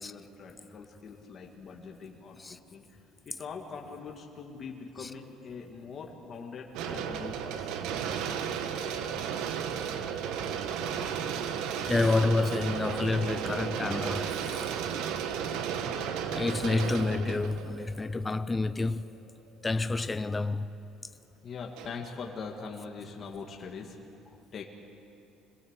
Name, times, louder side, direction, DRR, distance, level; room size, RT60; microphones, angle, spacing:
voice 1, 0.0-7.9 21.4-24.0 24.5-24.6, left 5 dB, 30° left, 2.0 m, -43 dB
sound 1, 6.7-18.8 19.5-19.6 21.8-22.1, right 7 dB, 75° right, 1.4 m, -34 dB
voice 2, 11.9-14.7 16.3-19.0 19.6-20.7, left 3 dB, 10° left, 0.5 m, -29 dB
25.0 x 18.0 x 8.2 m
cardioid pair, 170°, 0 cm